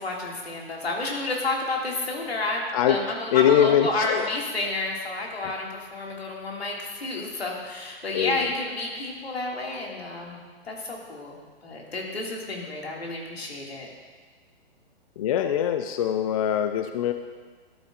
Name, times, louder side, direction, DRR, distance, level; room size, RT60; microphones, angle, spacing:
voice 1, 0.0-13.9, left 2 dB, 85° left, -1 dB, 2.1 m, -31 dB
voice 2, 3.3-4.3 5.4-5.6 8.1-8.5 15.2-17.1, left 10 dB, 35° left, 8 dB, 0.4 m, -23 dB
11.5 x 8.4 x 2.4 m, 1.5 s
hypercardioid pair, 125°, 31 cm